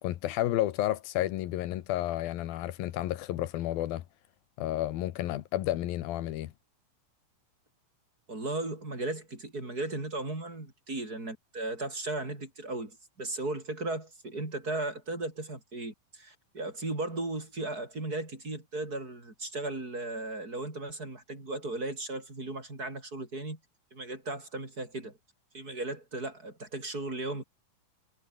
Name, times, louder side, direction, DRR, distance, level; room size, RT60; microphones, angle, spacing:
voice 1, 0.0-4.0 4.6-6.5, left 14 dB, 90° left, 3.0 m, -31 dB
voice 2, 8.3-23.6 23.9-25.2 25.5-27.4, right 2 dB, 25° right, 5.7 m, -36 dB
omnidirectional pair, 4.1 m